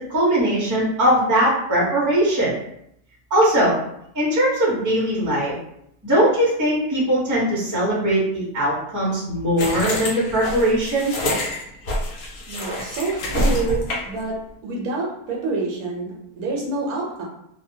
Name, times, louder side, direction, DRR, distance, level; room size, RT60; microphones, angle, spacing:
voice 1, 0.1-2.5 3.3-3.8 4.1-5.5 6.0-11.1, right 1 dB, 20° right, -6 dB, 0.6 m, -20 dB
sound 1, 9.6-14.2, left 1 dB, 70° left, 1.0 m, -26 dB
voice 2, 12.5-14.4 14.6-17.2, right 3 dB, 75° right, -2 dB, 1.1 m, -27 dB
2.7 x 2.2 x 2.6 m, 0.76 s
omnidirectional pair, 1.6 m